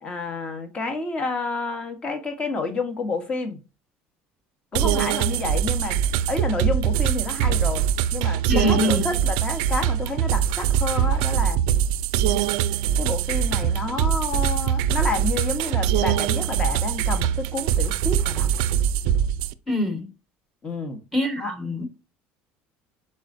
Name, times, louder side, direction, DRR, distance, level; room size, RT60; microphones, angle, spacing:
voice 1, 0.0-3.6 4.7-6.0 6.3-7.8 8.1-11.6 13.0-18.5 20.6-21.0 21.3-21.5, left 3 dB, 25° left, 1.0 m, -29 dB
sound 1, 4.7-19.5, right 9 dB, 85° right, 0.3 m, -23 dB
voice 2, 8.5-9.1 19.7-20.1 21.1-21.9, left 1 dB, ahead, 1.1 m, -24 dB
4.7 x 4.3 x 2.5 m
cardioid pair, 140°, 4 cm